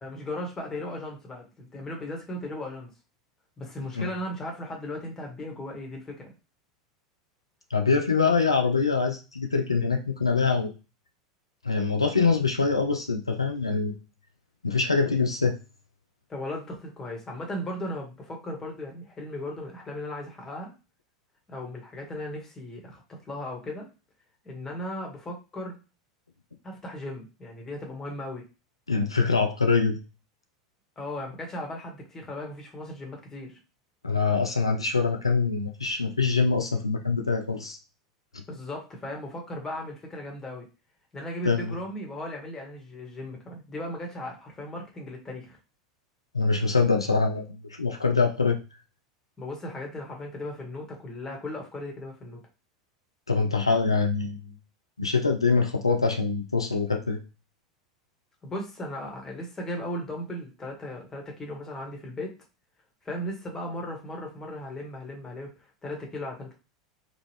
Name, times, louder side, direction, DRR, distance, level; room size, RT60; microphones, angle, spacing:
voice 1, 0.0-2.9 3.6-6.3 16.3-20.7 21.5-23.9 24.4-25.8 26.6-28.4 31.0-33.6 38.5-40.6 41.1-45.6 49.4-52.4 58.4-62.3 63.0-66.5, left 1 dB, 20° left, 0 dB, 1.4 m, -37 dB
voice 2, 7.7-10.7 11.6-13.9 14.6-15.6 28.9-30.0 34.0-37.8 41.5-41.8 46.3-48.6 53.3-54.6 55.0-57.2, left 4 dB, 85° left, 3 dB, 0.4 m, -24 dB
3.8 x 2.4 x 3.2 m, 0.30 s
figure-of-eight pair, 80°, 3 cm